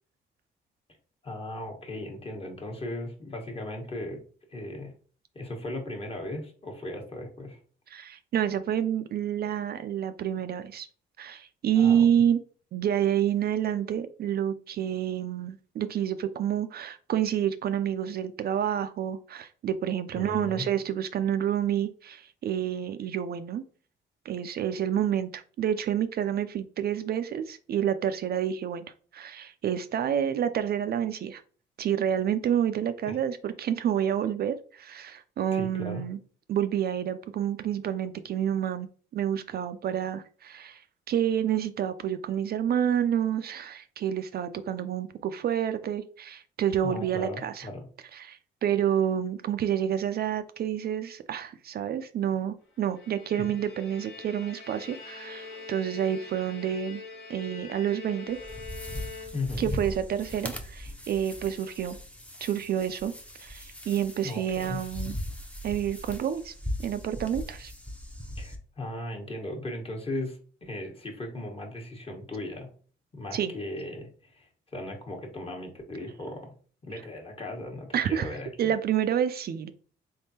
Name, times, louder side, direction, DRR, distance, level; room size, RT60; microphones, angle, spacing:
voice 1, 1.2-4.2 4.5-4.9 5.3-7.6 11.7-12.1 20.1-20.7 33.1-33.2 35.5-36.0 46.8-47.8 53.4-53.5 59.3-59.7 64.2-64.8 68.4-72.7 73.1-76.5 76.8-78.7, left 1 dB, 30° left, 2 dB, 1.2 m, -37 dB
voice 2, 7.9-10.9 11.2-12.4 12.7-23.6 24.3-28.8 29.1-31.4 31.8-36.2 36.5-47.7 48.1-57.0 57.3-58.4 59.6-62.0 62.4-63.1 63.4-65.2 65.6-66.5 66.8-67.7 73.3-73.5 77.9-79.7, right 9 dB, 55° right, 10 dB, 0.4 m, -28 dB
Bowed string instrument, 52.8-59.7, left 4 dB, 75° left, 1.0 m, -44 dB
sound 1, 58.3-68.6, left 1 dB, 5° left, 0.6 m, -39 dB
3.6 x 3.5 x 2.8 m, 0.42 s
cardioid pair, 90°, 20 cm